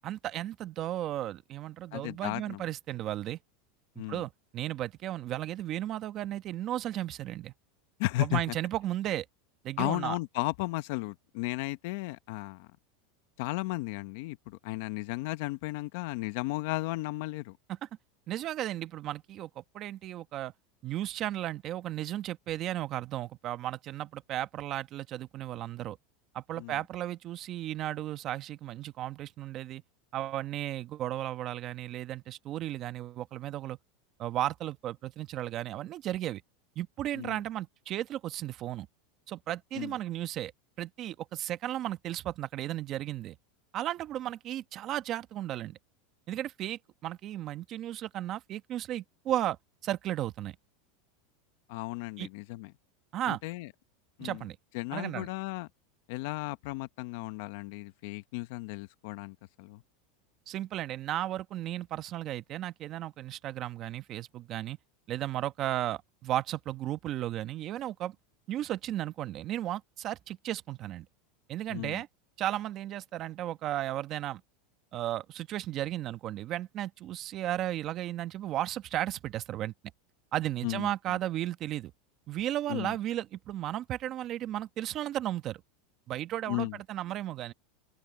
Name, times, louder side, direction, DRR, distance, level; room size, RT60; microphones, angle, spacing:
voice 1, 0.0-3.4 4.1-7.5 8.2-9.2 9.6-10.2 18.3-20.5 20.8-26.0 26.3-29.8 30.1-33.8 34.2-36.4 36.7-38.9 39.3-40.5 40.8-43.4 43.7-45.8 46.3-49.6 49.8-50.6 52.2-52.3 53.1-53.4 54.2-54.6 54.9-55.3 60.5-64.8 65.1-68.2 68.5-71.1 71.5-72.1 72.4-74.4 74.9-79.7 80.3-81.9 82.3-85.6 86.1-87.5, right 13 dB, 40° right, 1.2 m, -34 dB
voice 2, 1.9-2.6 4.0-4.2 8.0-8.5 9.8-12.7 13.4-17.6 26.6-26.7 37.1-37.4 39.8-39.9 51.7-52.7 53.3-53.7 54.2-54.4 54.7-55.7 56.1-59.8 71.7-72.0 80.6-80.9 82.7-83.0 86.5-86.8, left 20 dB, 65° left, 1.1 m, -34 dB
open air
supercardioid pair, 135°, 0 cm